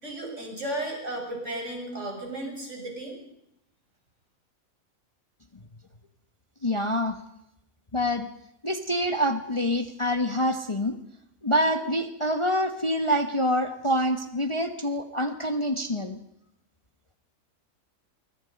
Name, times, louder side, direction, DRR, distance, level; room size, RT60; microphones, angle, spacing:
voice 1, 0.0-3.2, right 1 dB, 55° right, 1 dB, 7.2 m, -34 dB
voice 2, 6.6-7.2 7.9-8.3 8.6-11.0 11.4-16.2, equal, 25° left, 6 dB, 1.3 m, -26 dB
24.5 x 24.0 x 5.4 m, 0.81 s
omnidirectional pair, 1.5 m